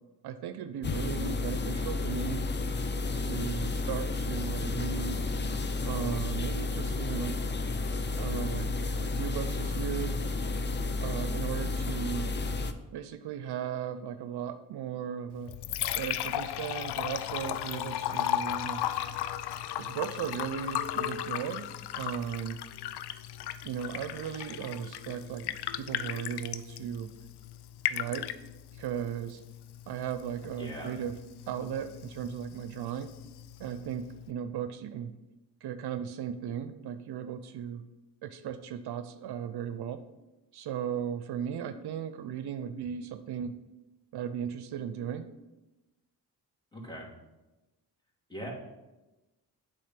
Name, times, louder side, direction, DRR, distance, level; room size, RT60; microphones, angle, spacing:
voice 1, 0.2-2.5 3.1-5.2 5.8-7.4 8.2-8.7 9.0-10.2 11.0-12.3 12.9-15.5 16.0-18.8 19.8-22.6 23.6-27.1 27.9-28.3 28.8-29.4 29.9-31.2 31.5-33.1 33.6-35.1 35.6-37.8 38.2-40.0 40.5-43.6 44.1-45.3, right 8 dB, 70° right, 10 dB, 0.6 m, -36 dB
sound 1, 0.8-12.7, left 3 dB, 25° left, 0.6 m, -32 dB
Liquid, 15.3-34.3, left 12 dB, 70° left, 0.5 m, -36 dB
voice 2, 30.6-30.9 46.7-47.1 48.3-48.5, equal, 10° left, -3 dB, 2.7 m, -40 dB
8.4 x 3.5 x 5.9 m, 1.1 s
supercardioid pair, 55°, 41 cm